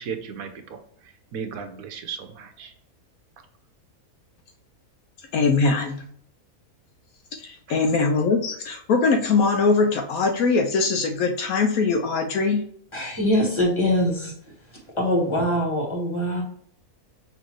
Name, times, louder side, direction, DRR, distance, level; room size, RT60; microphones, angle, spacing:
voice 1, 0.0-2.7 7.7-7.8, right 6 dB, 70° right, 7 dB, 1.1 m, -36 dB
voice 2, 5.3-6.0 7.3-12.6, left 4 dB, 75° left, 4 dB, 1.0 m, -22 dB
voice 3, 12.9-14.3 15.0-16.4, left 1 dB, 20° left, -1 dB, 1.4 m, -23 dB
5.9 x 2.9 x 3.0 m, 0.64 s
omnidirectional pair, 1.6 m